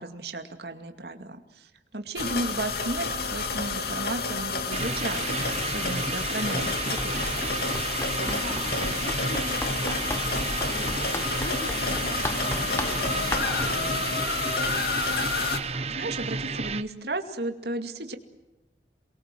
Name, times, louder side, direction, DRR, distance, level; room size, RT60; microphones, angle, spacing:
voice 1, 0.0-7.3 15.6-18.2, right 2 dB, 70° right, 6 dB, 2.4 m, -34 dB
sound 1, 2.2-15.6, left 4 dB, 60° left, 2.6 m, -30 dB
sound 2, 4.7-16.8, right 4 dB, 35° right, 0.9 m, -32 dB
Run, 6.8-13.8, left 1 dB, 15° left, 1.1 m, -36 dB
voice 2, 8.2-14.2, left 1 dB, 90° left, 1 dB, 4.6 m, -40 dB
28.5 x 22.5 x 7.7 m, 0.97 s
head